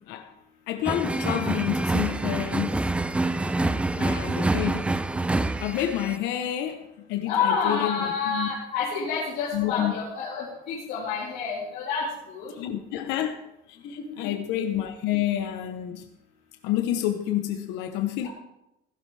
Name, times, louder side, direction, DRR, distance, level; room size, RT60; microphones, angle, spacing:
voice 1, 0.7-2.8 4.0-4.9 5.6-8.5 9.5-9.9 12.6-13.4 13.7-16.1 16.6-18.3, left 12 dB, 75° left, 6 dB, 1.0 m, -29 dB
sound 1, 0.8-6.2, right 2 dB, 5° right, 0.4 m, -26 dB
voice 2, 7.3-12.5 18.2-18.3, left 5 dB, 55° left, -7 dB, 3.5 m, -28 dB
15.5 x 12.0 x 3.4 m, 0.88 s
cardioid pair, 150°, 18 cm